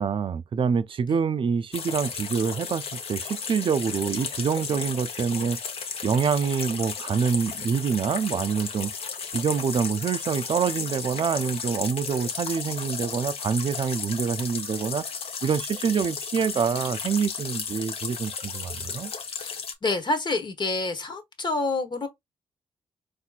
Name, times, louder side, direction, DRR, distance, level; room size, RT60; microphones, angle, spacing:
voice 1, 0.0-5.6 6.0-8.9 9.3-15.0 15.4-19.1, right 6 dB, 50° right, 0.5 m, -26 dB
sound 1, 1.7-19.7, left 6 dB, 65° left, 0.9 m, -34 dB
voice 2, 19.8-22.1, left 2 dB, 45° left, 1.2 m, -27 dB
4.2 x 2.7 x 2.4 m
cardioid pair, 65°, 11 cm